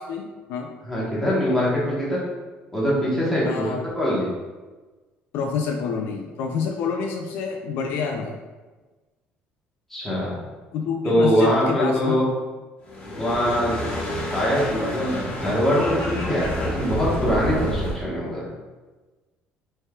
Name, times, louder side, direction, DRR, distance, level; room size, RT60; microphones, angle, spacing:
voice 1, 0.0-0.7 3.4-3.8 5.3-8.4 10.7-12.2, left 5 dB, 65° left, 2 dB, 0.4 m, -28 dB
voice 2, 0.8-2.2 2.7-4.3 9.9-10.4 11.0-12.3 13.2-13.8 14.3-18.5, equal, 5° left, -7 dB, 1.1 m, -23 dB
sound 1, 12.8-18.0, left 1 dB, 40° left, 1.1 m, -29 dB
5.4 x 3.4 x 2.3 m, 1.3 s
cardioid pair, 175°, 4 cm